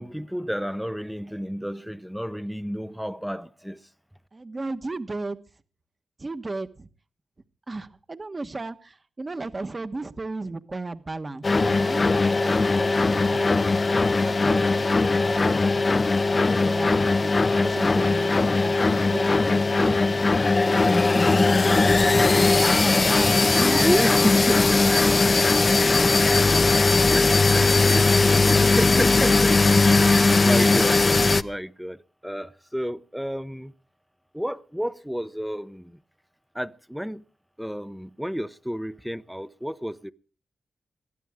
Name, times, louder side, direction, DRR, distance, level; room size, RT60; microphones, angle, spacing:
voice 1, 0.0-3.8 23.4-24.8 27.1-31.0 31.4-33.7 34.3-35.9 36.5-37.2 37.6-40.1, equal, ahead, 0.7 m, -31 dB
voice 2, 4.3-5.4 6.2-6.9 7.7-16.1 16.4-18.3 18.6-20.3 20.6-25.4, right 3 dB, 30° right, 1.2 m, -35 dB
sound 1, 11.4-31.4, left 3 dB, 35° left, 0.7 m, -19 dB
22.0 x 14.5 x 3.6 m
cardioid pair, 85°, 0 cm